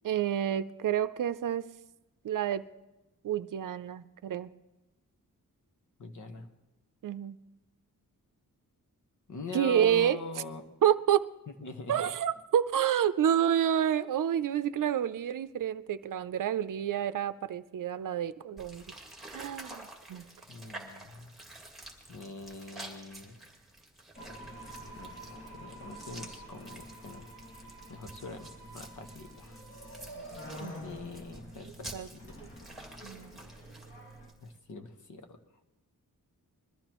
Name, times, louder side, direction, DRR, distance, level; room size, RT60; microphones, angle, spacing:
voice 1, 0.0-1.7 2.2-2.7 3.2-4.5 7.0-7.4 9.5-10.2 10.8-11.2 11.9-18.8 19.3-20.3 30.6-30.7 31.9-32.1 33.0-33.4, right 10 dB, 70° right, 12 dB, 0.6 m, -29 dB
voice 2, 6.0-6.5 9.3-10.6 11.6-11.9 20.5-21.3 22.1-23.4 25.0-25.1 25.5-27.3 27.9-28.5 28.7-29.6 30.8-32.5 34.4-35.4, left 4 dB, 65° left, 5 dB, 1.3 m, -43 dB
sound 1, 18.6-34.6, right 1 dB, ahead, 2.0 m, -50 dB
sound 2, 24.1-34.3, equal, 35° left, 2.0 m, -47 dB
22.0 x 13.5 x 3.0 m, 1.0 s
wide cardioid pair, 155°, 33 cm